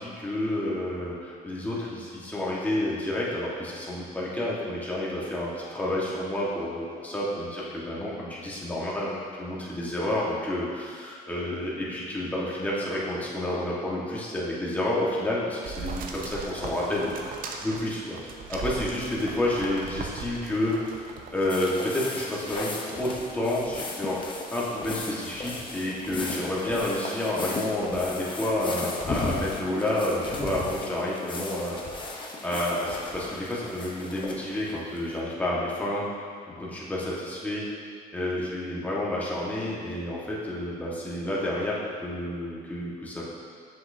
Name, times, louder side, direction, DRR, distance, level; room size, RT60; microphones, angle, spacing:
voice 1, 0.0-17.1 17.6-18.2 18.5-24.2 24.5-31.8 32.4-36.0 36.6-37.6 38.1-43.2, left 1 dB, 10° left, -6 dB, 1.5 m, -30 dB
sound 1, 15.6-21.5 22.0-22.5 22.9-23.0, right 5 dB, 55° right, 0.7 m, -38 dB
sound 2, 21.5-35.1, left 2 dB, 30° left, 0.8 m, -36 dB
7.5 x 6.4 x 2.7 m, 2.1 s
cardioid pair, 110°, 17 cm